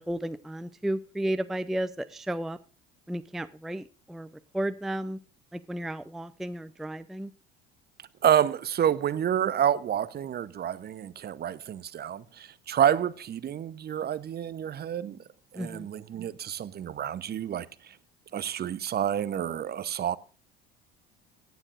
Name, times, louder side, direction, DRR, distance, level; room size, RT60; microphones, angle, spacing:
voice 1, 0.0-2.6 3.1-4.3 4.5-5.2 5.5-7.3 15.5-15.9, right 1 dB, ahead, 0.5 m, -33 dB
voice 2, 8.2-15.2 15.5-18.0 18.3-20.2, right 10 dB, 35° right, 0.7 m, -28 dB
17.0 x 9.3 x 2.4 m
figure-of-eight pair, 60°, 29 cm